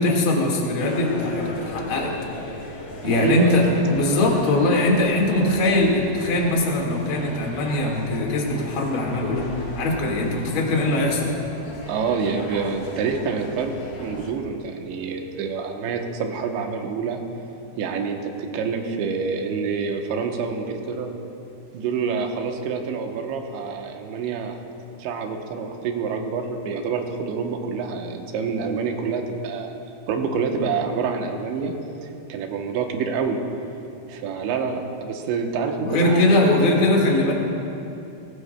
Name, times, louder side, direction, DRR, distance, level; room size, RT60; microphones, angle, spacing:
voice 1, 0.0-2.1 3.0-3.6 3.9-9.4 9.7-11.3 35.8-37.3, left 2 dB, 55° left, -1 dB, 1.4 m, -21 dB
sound 1, 0.8-14.3, left 2 dB, 90° left, 1.2 m, -36 dB
voice 2, 3.1-3.7 11.9-17.2 17.8-21.1 21.7-24.6 25.0-29.7 30.1-31.7 32.3-33.4 34.1-36.5, right 5 dB, 80° right, 3 dB, 3.1 m, -27 dB
20.0 x 17.0 x 2.2 m, 2.8 s
omnidirectional pair, 5.3 m